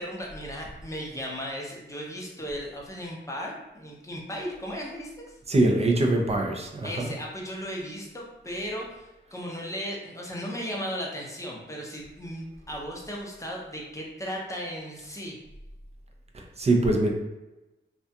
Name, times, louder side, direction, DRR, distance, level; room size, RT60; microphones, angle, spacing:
voice 1, 0.0-5.1 6.8-15.4, equal, 15° left, -2 dB, 0.6 m, -36 dB
voice 2, 5.5-7.1 16.3-17.1, right 2 dB, 35° right, 2 dB, 0.4 m, -23 dB
2.4 x 2.2 x 2.7 m, 1.0 s
wide cardioid pair, 95°, 20 cm